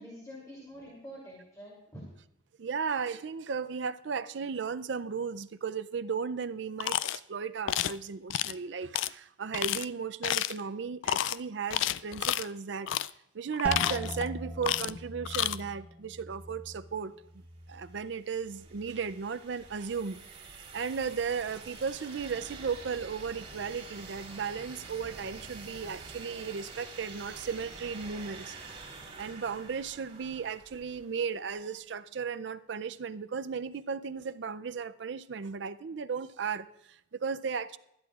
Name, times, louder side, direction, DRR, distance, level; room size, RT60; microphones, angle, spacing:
voice 1, 0.0-2.0, equal, 20° left, 2.9 m, -46 dB
voice 2, 2.6-12.9 13.3-17.1 17.7-28.5 29.2-37.8, right 6 dB, 65° right, 0.5 m, -35 dB
sound 1, 6.8-7.2 7.7-8.0 8.3-8.5 8.9-9.1 9.5-9.8 10.2-10.6 11.0-11.4 11.7-12.5 12.9-13.1 13.5-14.3 14.6-15.0 15.3-15.6, left 12 dB, 85° left, 0.3 m, -30 dB
sound 2, 13.6-19.3 19.6-20.3 20.8-21.3, equal, 5° right, 0.4 m, -43 dB
sound 3, 17.7-31.4, right 4 dB, 35° right, 3.7 m, -47 dB
20.0 x 12.5 x 2.4 m
head